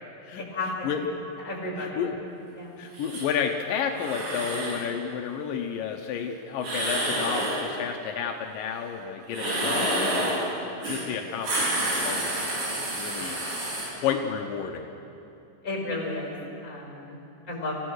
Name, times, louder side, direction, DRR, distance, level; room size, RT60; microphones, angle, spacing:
voice 1, 0.4-0.9 1.4-2.1 2.6-2.8 15.6-16.3 16.6-17.2 17.5-17.8, left 2 dB, 25° left, -1 dB, 5.1 m, -33 dB
voice 2, 1.8-2.2 2.8-10.3 10.8-13.4 14.0-14.9, left 7 dB, 85° left, 3 dB, 2.6 m, -31 dB
sound 1, 2.9-3.3 3.9-4.8 6.6-7.6 9.3-10.4 10.8-11.0 11.3-13.8, right 1 dB, 90° right, 6.1 m, -28 dB
26.0 x 16.0 x 6.4 m, 2.7 s
omnidirectional pair, 3.9 m